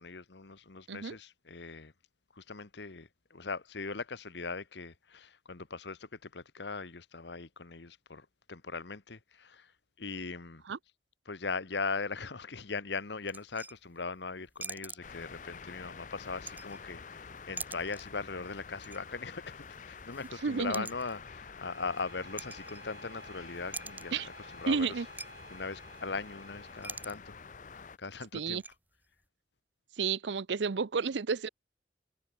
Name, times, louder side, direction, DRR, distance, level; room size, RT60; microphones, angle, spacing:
voice 1, 0.0-1.9 2.4-9.7 10.0-10.6 11.3-24.1 24.5-24.9 25.5-27.4 28.0-28.6, left 4 dB, 75° left, 1.2 m, -39 dB
sound 1, 13.3-14.0 14.5-15.5 16.2-17.1 17.4-18.2 18.5-19.1 19.4-23.3 23.5-24.2 24.7-24.8 25.0-25.3 25.5-25.6 25.9-26.3 26.7-27.2 27.5-27.6 28.1-28.8, right 3 dB, 10° right, 3.0 m, -45 dB
sound 2, 15.0-28.0, left 5 dB, 45° left, 0.6 m, -48 dB
voice 2, 20.4-20.9 24.1-24.3 24.7-25.1 28.3-28.6 30.0-31.5, right 5 dB, 80° right, 0.6 m, -31 dB
Bowed string instrument, 21.6-27.2, right 4 dB, 65° right, 3.2 m, -55 dB
head